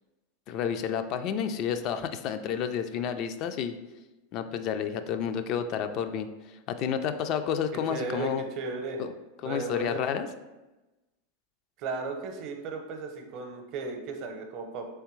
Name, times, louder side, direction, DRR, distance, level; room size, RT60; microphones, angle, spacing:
voice 1, 0.5-3.8 4.3-8.4 9.0-9.1 9.4-10.3, left 8 dB, 50° left, 9 dB, 0.3 m, -30 dB
voice 2, 7.7-9.0 9.4-10.0 11.8-14.9, right 3 dB, 50° right, 4 dB, 0.7 m, -35 dB
3.4 x 3.2 x 3.1 m, 1.1 s
hypercardioid pair, 110°, 0 cm